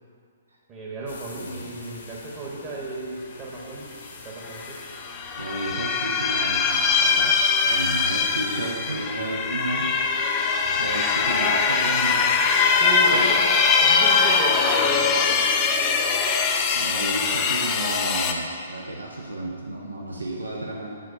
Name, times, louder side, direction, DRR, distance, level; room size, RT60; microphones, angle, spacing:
voice 1, 0.7-4.8 12.8-13.4 13.8-15.5, right 1 dB, 25° right, -5 dB, 1.2 m, -34 dB
sound 1, 1.1-18.0, left 3 dB, 60° left, 1.2 m, -43 dB
voice 2, 1.3-1.7 5.3-9.9 10.8-12.4 13.1-13.3 16.7-21.0, right 2 dB, 80° right, -2 dB, 0.8 m, -32 dB
sound 2, 4.5-4.7 5.0-18.3, left 5 dB, 25° left, 0.5 m, -22 dB
7.6 x 4.0 x 5.6 m, 2.2 s
figure-of-eight pair, 125°, 0 cm